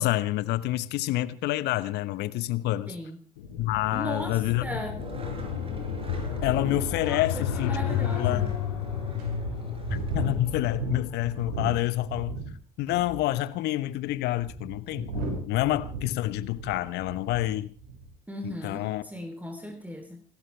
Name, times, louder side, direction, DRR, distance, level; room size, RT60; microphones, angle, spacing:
voice 1, 0.0-2.9 3.6-4.7 6.4-8.5 9.9-12.4 12.8-17.7 18.4-19.0, left 16 dB, 60° left, 1.1 m, -28 dB
voice 2, 2.9-3.2 3.9-4.9 7.0-8.5 18.3-20.2, equal, 10° right, 3.2 m, -37 dB
sound 1, 3.4-12.2, left 7 dB, 75° left, 4.4 m, -32 dB
Skateboard, 5.0-10.6, right 2 dB, 30° right, 5.9 m, -44 dB
sound 2, 7.0-7.1 7.7-7.8 8.5-8.6 9.2-12.5 12.8-13.3 14.0-17.5 17.8-18.1, right 4 dB, 70° right, 6.0 m, -36 dB
29.0 x 13.5 x 3.4 m
hypercardioid pair, 60°, 19 cm